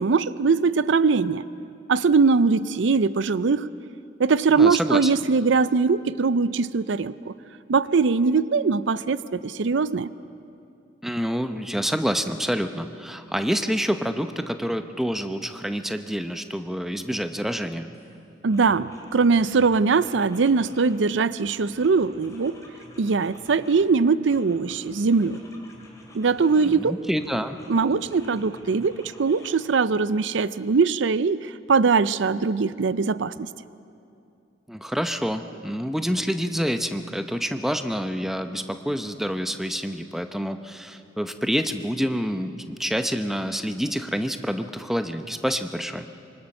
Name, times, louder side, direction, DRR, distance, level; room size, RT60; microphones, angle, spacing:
voice 1, 0.0-1.4 1.9-3.7 4.2-7.3 7.7-10.1 18.4-22.6 23.0-25.4 26.1-26.9 27.7-33.5, right 4 dB, 80° right, 16 dB, 0.5 m, -21 dB
voice 2, 4.5-5.1 11.0-17.9 26.6-27.6 34.7-46.0, equal, ahead, 8 dB, 0.8 m, -27 dB
sound 1, 17.9-18.1 18.5-21.0 21.4-23.9 24.3-26.8 27.2-29.5, left 1 dB, 15° left, 3.6 m, -49 dB
25.5 x 24.5 x 6.6 m, 2.6 s
head